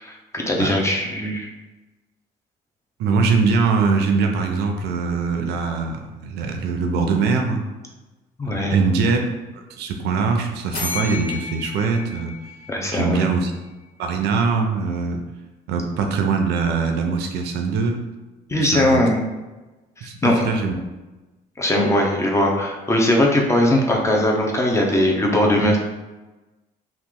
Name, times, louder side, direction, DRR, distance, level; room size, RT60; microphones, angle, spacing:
voice 1, 0.0-1.5 8.4-8.8 12.7-13.2 18.5-19.2 20.2-20.5 21.6-25.8, left 1 dB, 15° left, 0 dB, 0.6 m, -19 dB
voice 2, 3.0-7.6 8.4-9.2 9.8-12.4 12.9-13.5 14.0-15.2 15.7-18.0 18.6-19.0 20.0-20.7, right 4 dB, 80° right, 4 dB, 0.5 m, -22 dB
sound 1, 10.7-13.5, left 4 dB, 80° left, 1.4 m, -32 dB
2.9 x 2.4 x 3.6 m, 1.1 s
cardioid pair, 110°, 17 cm